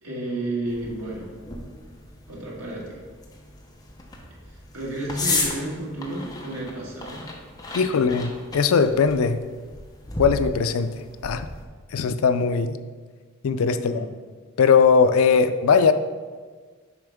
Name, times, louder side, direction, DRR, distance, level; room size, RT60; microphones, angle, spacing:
voice 1, 0.0-1.3 2.3-3.0 4.5-7.3 7.8-8.1 13.8-14.1, right 1 dB, 85° right, -5 dB, 1.9 m, -32 dB
sound 1, 0.7-11.6, left 2 dB, 20° left, 0.8 m, -34 dB
voice 2, 7.7-9.4 10.2-10.9 11.2-11.5 11.9-12.8 13.4-14.1 14.6-15.9, left 5 dB, 80° left, 11 dB, 0.4 m, -19 dB
7.0 x 5.2 x 3.5 m, 1.5 s
head